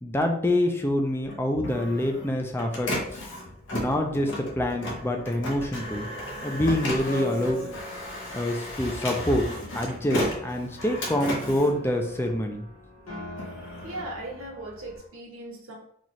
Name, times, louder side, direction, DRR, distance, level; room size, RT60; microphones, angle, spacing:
voice 1, 0.0-2.9 3.7-6.1 6.4-7.7 8.3-9.5 9.7-12.7, left 1 dB, 10° left, 3 dB, 0.4 m, -26 dB
Printer, 1.3-12.7 13.1-15.0, left 1 dB, 60° left, 0.9 m, -35 dB
Piano, 7.1-15.1, equal, 85° left, 1.3 m, -42 dB
voice 2, 13.8-15.7, right 1 dB, 75° right, -3 dB, 1.1 m, -38 dB
4.2 x 2.4 x 3.0 m, 0.68 s
head